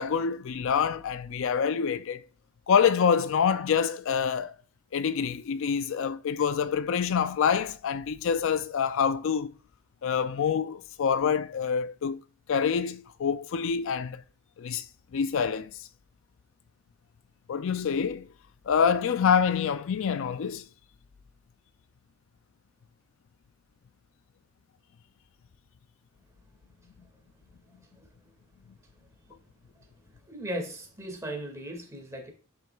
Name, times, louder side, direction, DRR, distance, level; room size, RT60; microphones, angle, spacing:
voice 1, 0.0-2.2 2.7-4.5 4.9-9.5 10.0-12.2 12.5-14.2 14.6-14.9 15.1-15.7 17.5-18.2 18.7-20.6, left 7 dB, 60° left, 0.4 m, -26 dB
voice 2, 30.2-32.3, right 1 dB, 15° right, 2.1 m, -37 dB
10.5 x 6.2 x 2.4 m
head